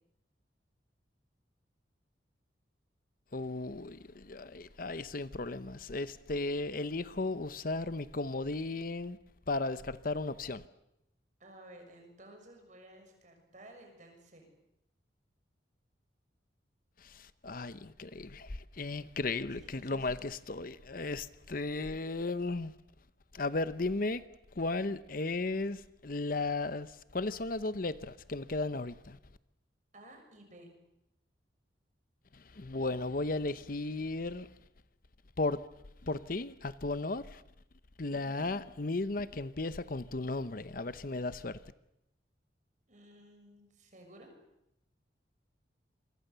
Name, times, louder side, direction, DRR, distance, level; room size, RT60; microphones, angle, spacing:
voice 1, 3.3-9.2 9.5-10.6 17.0-22.7 23.3-24.2 24.6-29.2 32.3-34.5 35.4-35.7 36.0-37.4 38.0-41.6, left 2 dB, 50° left, 0.9 m, -35 dB
voice 2, 11.4-14.5 19.6-20.2 29.9-30.7 38.1-38.5 42.9-44.3, right 1 dB, 40° right, 6.5 m, -55 dB
27.5 x 24.5 x 6.9 m
head